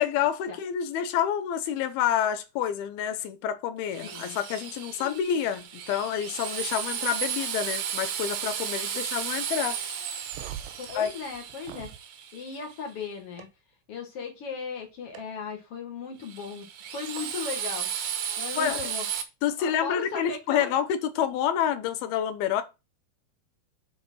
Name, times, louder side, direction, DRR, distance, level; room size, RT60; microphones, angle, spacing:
voice 1, 0.0-9.8 11.0-11.1 18.6-18.8 19.4-22.6, left 9 dB, 75° left, 2.7 m, -28 dB
Drill, 3.9-12.8 16.2-19.2, right 8 dB, 65° right, 2.1 m, -34 dB
voice 2, 4.0-4.4 5.0-5.2 8.9-9.0 10.8-11.9 12.3-13.5 13.9-17.9 18.4-19.1 19.6-20.7, left 5 dB, 45° left, 2.3 m, -37 dB
sound 1, 10.2-12.0 13.4-13.5 15.1-15.2 17.2-17.3 18.7-18.8, right 10 dB, 85° right, 3.2 m, -43 dB
7.6 x 4.9 x 5.7 m
omnidirectional pair, 4.7 m